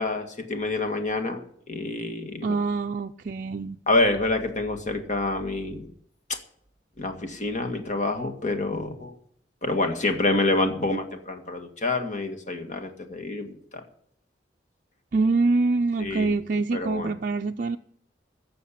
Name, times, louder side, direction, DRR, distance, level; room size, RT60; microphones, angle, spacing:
voice 1, 0.0-2.6 3.9-5.9 7.0-9.1 9.6-13.8 16.0-16.3 16.7-17.2, left 2 dB, 45° left, 1.8 m, -27 dB
voice 2, 2.4-3.8 15.1-17.8, right 3 dB, 50° right, 0.4 m, -25 dB
16.0 x 6.6 x 8.6 m
head